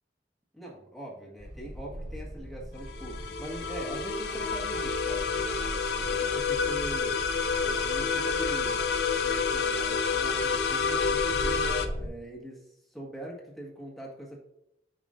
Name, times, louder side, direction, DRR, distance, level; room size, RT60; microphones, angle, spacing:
voice 1, 0.5-7.2 7.6-8.9 9.2-14.4, right 1 dB, ahead, -3 dB, 1.4 m, -42 dB
sound 1, 1.4-12.1, equal, 40° right, 2.6 m, -40 dB
sound 2, 2.8-11.9, left 5 dB, 65° left, 0.5 m, -29 dB
8.2 x 5.0 x 2.5 m, 0.79 s
head